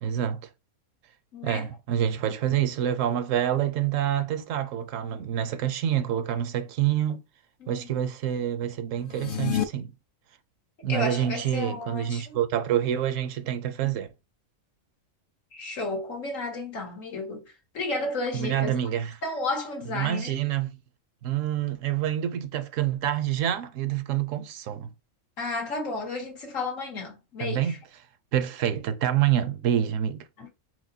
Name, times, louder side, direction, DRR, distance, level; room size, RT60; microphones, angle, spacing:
voice 1, 0.0-0.5 1.4-7.2 7.7-9.9 10.8-14.1 18.3-19.1 19.9-20.8 21.2-24.9 27.4-27.8 28.3-30.3, right 10 dB, 80° right, 1.0 m, -27 dB
voice 2, 1.3-1.7 7.6-8.0 10.9-12.4 15.5-17.5 17.7-18.8 19.2-20.3 25.4-27.8 30.4-30.5, left 2 dB, 85° left, 2.0 m, -32 dB
sound 1, 9.0-9.6, left 9 dB, 60° left, 0.6 m, -28 dB
4.7 x 4.1 x 2.7 m
omnidirectional pair, 1.3 m